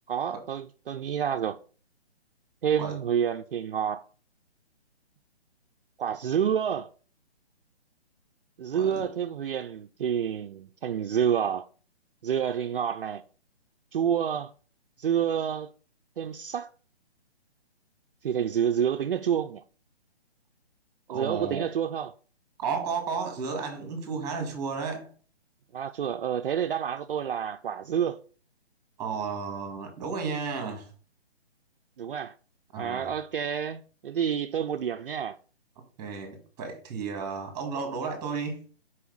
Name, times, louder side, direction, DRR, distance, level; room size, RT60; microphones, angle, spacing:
voice 1, 0.1-1.6 2.6-4.0 6.0-6.9 8.6-11.7 12.2-13.2 13.9-14.5 15.0-15.7 16.2-16.7 18.2-19.6 21.1-22.1 25.7-28.2 32.0-32.3 32.8-35.4, right 8 dB, 55° right, 0.5 m, -28 dB
voice 2, 8.7-9.0 21.1-21.7 22.6-25.1 29.0-30.9 32.7-33.1 36.0-38.6, right 5 dB, 10° right, 1.6 m, -33 dB
5.8 x 4.7 x 3.9 m
hypercardioid pair, 160°, 33 cm